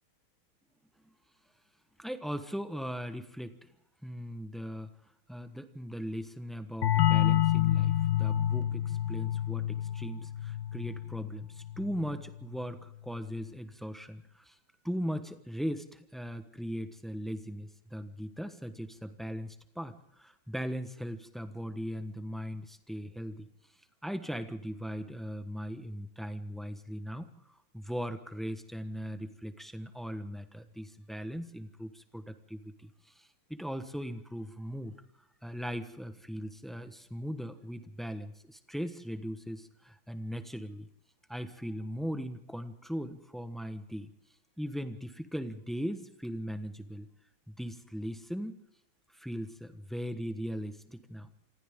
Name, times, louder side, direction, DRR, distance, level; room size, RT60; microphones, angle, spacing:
voice 1, 2.0-3.7 4.0-4.9 5.3-14.5 14.8-23.5 24.0-34.9 35.4-40.9 41.3-44.1 44.6-47.1 47.5-48.6 49.1-51.3, equal, ahead, 8 dB, 0.7 m, -39 dB
sound 1, 6.8-12.3, left 12 dB, 85° left, 1.8 m, -28 dB
27.5 x 25.5 x 3.8 m, 0.77 s
omnidirectional pair, 2.3 m